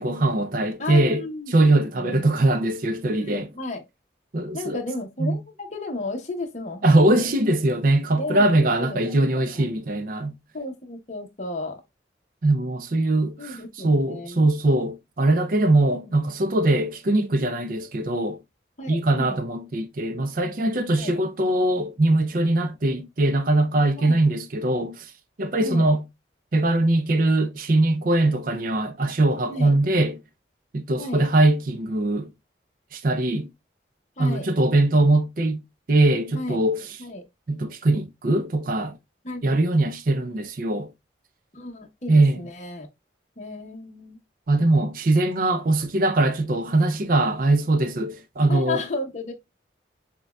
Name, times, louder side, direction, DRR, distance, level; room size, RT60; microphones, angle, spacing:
voice 1, 0.0-3.5 4.3-4.8 5.2-5.4 6.8-10.3 12.4-18.4 18.9-25.1 25.4-26.0 26.5-30.2 30.7-32.3 32.9-33.5 34.2-35.6 35.9-37.0 37.5-39.0 39.4-40.9 42.1-42.4 44.5-48.8, right 2 dB, 50° right, 0.5 m, -21 dB
voice 2, 0.8-1.5 1.9-2.3 3.2-3.8 4.5-7.3 8.2-9.6 10.5-11.8 13.4-14.5 18.8-19.4 20.9-21.1 24.0-24.2 25.6-25.9 29.5-29.7 31.0-31.3 34.2-34.5 36.3-36.6 37.0-37.2 39.2-39.5 41.5-42.9 43.4-44.2 48.5-49.3, left 2 dB, 40° left, 0.9 m, -33 dB
6.3 x 2.3 x 2.2 m
head